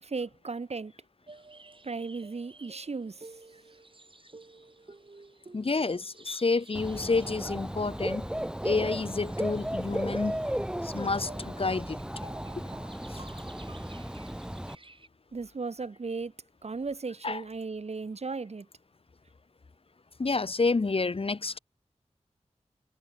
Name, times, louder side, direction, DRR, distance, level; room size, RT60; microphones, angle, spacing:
voice 1, 0.0-0.9 1.8-3.3 15.3-16.3 16.6-18.7, right 4 dB, 65° right, 2.5 m, -36 dB
sound 1, 1.3-15.1, right 3 dB, 45° right, 6.1 m, -53 dB
voice 2, 5.5-8.3 8.6-10.4 10.8-12.0 13.1-13.2 17.2-17.4 20.2-21.6, left 3 dB, 50° left, 1.7 m, -29 dB
Dog / Bird, 6.7-14.7, equal, 5° right, 2.6 m, -35 dB
wide cardioid pair, 80°, 12 cm